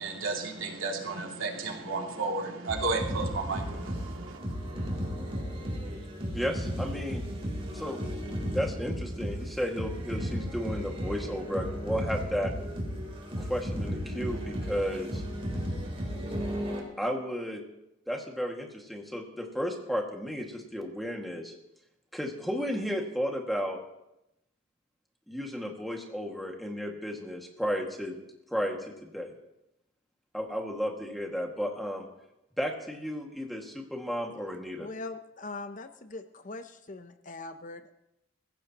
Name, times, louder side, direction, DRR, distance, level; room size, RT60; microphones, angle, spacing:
voice 1, 0.0-4.4, right 3 dB, 80° right, 0 dB, 2.8 m, -33 dB
sound 1, 2.7-16.8, equal, 30° right, 3.8 m, -34 dB
voice 2, 6.3-7.3 7.7-8.0 8.5-12.5 13.4-15.2 17.0-17.6 18.1-21.5 22.1-23.8 25.3-28.2 28.5-29.3 30.3-32.1 32.6-34.9, equal, ahead, 0 dB, 2.1 m, -33 dB
voice 3, 34.8-37.9, left 3 dB, 40° left, 9 dB, 0.8 m, -41 dB
24.0 x 16.0 x 3.0 m, 0.87 s
head